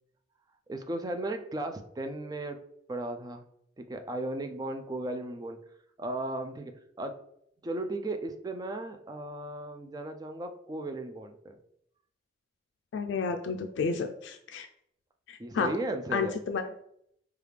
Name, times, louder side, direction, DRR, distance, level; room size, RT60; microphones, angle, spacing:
voice 1, 0.7-2.6 2.9-3.4 3.8-5.6 6.0-7.2 7.6-11.6 15.4-16.4, right 2 dB, 20° right, 6 dB, 0.3 m, -36 dB
voice 2, 12.9-14.7 15.3-15.7 16.1-16.6, left 5 dB, 85° left, 5 dB, 0.3 m, -31 dB
4.8 x 2.3 x 3.3 m, 0.70 s
head